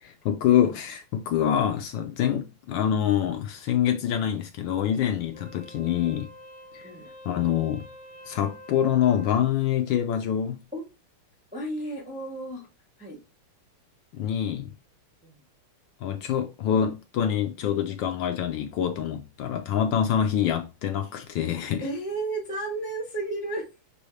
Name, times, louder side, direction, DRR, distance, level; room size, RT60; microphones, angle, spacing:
voice 1, 0.0-6.3 6.7-6.9 7.2-7.8 8.3-10.6 14.1-14.7 16.0-21.9, left 9 dB, 75° left, 1.2 m, -25 dB
Wind instrument woodwind instrument, 5.2-9.5, equal, 45° left, 0.9 m, -47 dB
voice 2, 11.5-12.7 13.0-13.2 15.2-15.4 21.8-23.7, right 2 dB, 10° right, 0.4 m, -33 dB
6.2 x 2.8 x 3.1 m
omnidirectional pair, 2.4 m